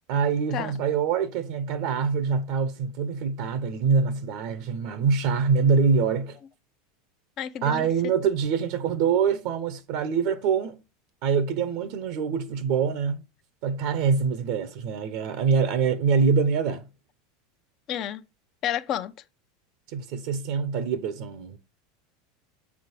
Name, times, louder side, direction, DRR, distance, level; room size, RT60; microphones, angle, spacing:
voice 1, 0.1-6.4 7.6-10.8 11.2-13.2 13.6-16.9 19.9-21.6, right 5 dB, 60° right, 0.9 m, -25 dB
voice 2, 7.4-7.9 17.9-18.2 18.6-19.1, left 10 dB, 45° left, 0.8 m, -30 dB
7.4 x 3.6 x 6.2 m
hypercardioid pair, 95°, 0 cm